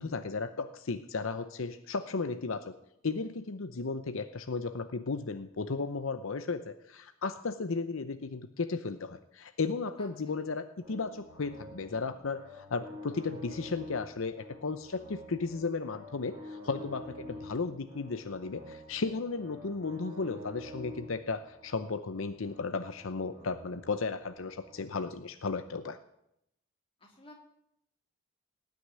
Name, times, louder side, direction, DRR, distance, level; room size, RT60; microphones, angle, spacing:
voice 1, 0.0-2.7 3.0-26.0, left 4 dB, 70° left, 10 dB, 0.7 m, -35 dB
voice 2, 10.0-10.3 17.1-17.5 27.0-27.4, left 1 dB, 25° left, 0 dB, 3.1 m, -54 dB
sound 1, 10.8-24.8, left 1 dB, 15° right, 4.5 m, -48 dB
18.5 x 6.5 x 9.9 m, 0.80 s
head